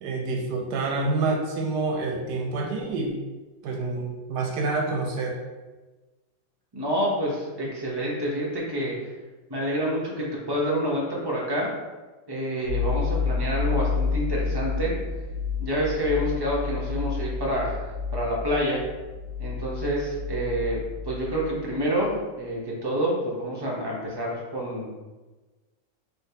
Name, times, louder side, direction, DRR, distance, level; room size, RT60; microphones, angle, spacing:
voice 1, 0.0-3.1 3.6-5.4, right 3 dB, 75° right, 1 dB, 1.1 m, -27 dB
voice 2, 6.7-8.9 9.5-11.7 12.3-14.9 15.6-17.8 18.1-18.8 19.4-20.8 21.0-24.9, equal, 30° right, -5 dB, 0.4 m, -28 dB
sound 1, 12.6-21.7 21.9-22.1, left 5 dB, 60° left, 1.4 m, -30 dB
4.2 x 3.3 x 2.8 m, 1.2 s
omnidirectional pair, 1.9 m